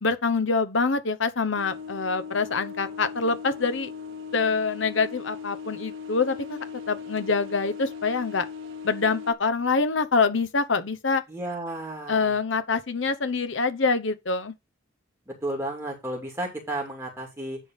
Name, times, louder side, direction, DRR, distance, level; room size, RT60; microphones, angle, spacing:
voice 1, 0.0-3.9 4.3-6.6 6.9-8.4 8.8-11.2 12.1-14.5, left 4 dB, 70° left, 0.9 m, -25 dB
sound 1, 1.6-9.3, left 6 dB, 75° right, 1.4 m, -38 dB
voice 2, 11.3-12.3 15.4-17.6, right 1 dB, 15° right, 2.5 m, -32 dB
10.0 x 3.8 x 5.3 m
head